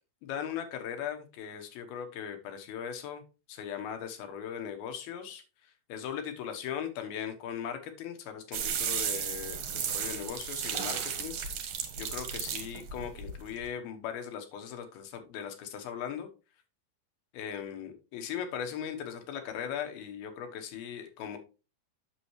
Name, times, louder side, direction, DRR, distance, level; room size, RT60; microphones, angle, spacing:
voice 1, 0.2-3.2 3.5-11.7 12.0-16.3 17.3-21.4, left 8 dB, 75° left, 6 dB, 3.0 m, -39 dB
sound 1, 8.5-13.7, right 8 dB, 65° right, 2.6 m, -34 dB
8.5 x 6.8 x 3.1 m, 0.32 s
omnidirectional pair, 4.4 m